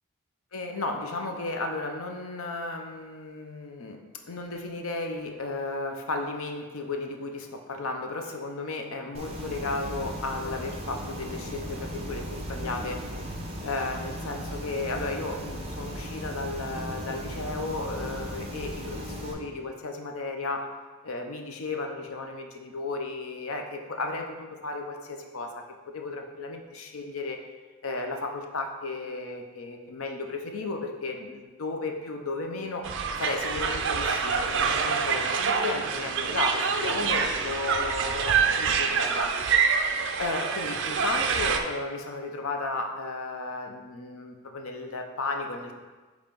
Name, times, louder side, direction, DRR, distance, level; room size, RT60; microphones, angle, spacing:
voice 1, 0.5-13.0 13.6-20.7 21.0-27.4 27.8-32.9 33.2-39.3 40.2-45.7, left 3 dB, 75° left, 3 dB, 0.7 m, -34 dB
sound 1, 9.1-19.3, equal, 30° right, 0.8 m, -37 dB
sound 2, 32.8-41.6, right 6 dB, 55° right, 0.4 m, -26 dB
8.6 x 3.1 x 3.8 m, 1.3 s
head